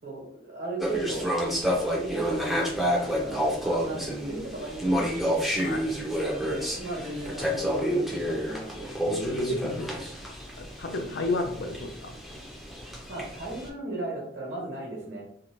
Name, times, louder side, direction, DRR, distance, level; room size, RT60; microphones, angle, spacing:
voice 1, 0.0-1.3 1.8-5.4 6.4-8.9 13.1-15.2, right 2 dB, 80° right, -2 dB, 1.1 m, -35 dB
sound 1, 0.8-13.7, equal, ahead, 0.4 m, -30 dB
voice 2, 5.6-6.0 9.1-9.9 10.5-12.2, left 2 dB, 75° left, 5 dB, 0.4 m, -31 dB
2.5 x 2.0 x 2.9 m, 0.70 s
head